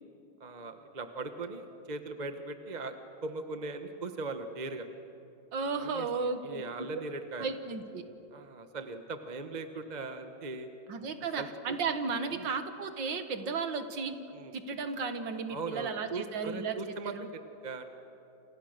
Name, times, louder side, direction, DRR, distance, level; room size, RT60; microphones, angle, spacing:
voice 1, 0.4-3.0 3.2-4.9 5.8-7.5 8.3-10.7 11.4-11.8 12.3-12.5 14.3-14.5 15.5-17.8, right 3 dB, 25° right, 7 dB, 1.1 m, -39 dB
voice 2, 5.5-6.9 7.4-8.0 10.9-14.2 14.5-16.8 17.0-17.3, right 4 dB, 65° right, 8 dB, 2.2 m, -34 dB
29.0 x 28.5 x 6.7 m, 2.9 s
omnidirectional pair, 2.2 m